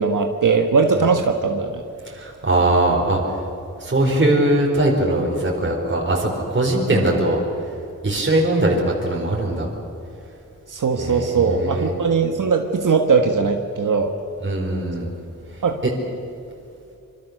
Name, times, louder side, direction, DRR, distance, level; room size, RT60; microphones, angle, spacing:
voice 1, 0.0-1.8 10.7-14.1 15.6-15.8, right 5 dB, 70° right, 4 dB, 1.6 m, -19 dB
voice 2, 2.1-3.2 3.8-7.4 8.0-9.7 11.0-11.9 14.4-15.1 15.8-15.9, right 1 dB, 35° right, -1 dB, 4.4 m, -20 dB
26.0 x 25.0 x 6.7 m, 2.7 s
wide cardioid pair, 125°, 32 cm